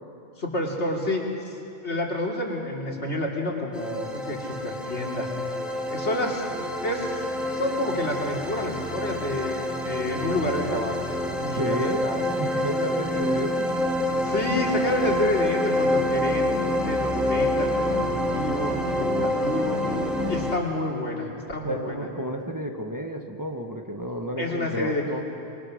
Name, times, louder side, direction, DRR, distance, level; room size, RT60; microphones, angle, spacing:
voice 1, 0.4-1.6 1.8-5.3 5.9-7.2 7.5-11.0 11.4-12.3 14.2-16.5 16.8-18.0 18.3-19.8 20.3-22.1 24.4-25.2, left 1 dB, 80° left, -1 dB, 3.2 m, -29 dB
sound 1, 3.7-20.6, left 1 dB, ahead, 2.2 m, -27 dB
voice 2, 11.6-12.1 12.4-13.7 21.6-24.9, equal, 20° right, 3 dB, 1.2 m, -31 dB
26.5 x 23.0 x 6.4 m, 2.7 s
omnidirectional pair, 1.1 m